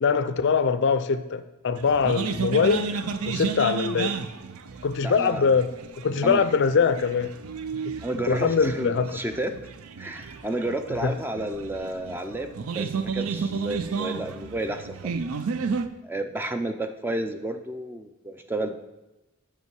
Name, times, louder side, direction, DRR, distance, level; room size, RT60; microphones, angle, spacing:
voice 1, 0.0-2.9 3.3-4.1 4.8-5.7 6.0-7.3 8.3-9.2 11.0-11.1, left 5 dB, 55° left, 13 dB, 0.4 m, -22 dB
sound 1, 1.8-15.9, right 5 dB, 90° right, 0.5 m, -32 dB
voice 2, 5.0-5.4 6.2-6.4 8.0-9.5 10.0-15.2 16.0-18.8, right 1 dB, 10° right, 8 dB, 0.4 m, -31 dB
8.3 x 5.8 x 4.6 m, 1.0 s
head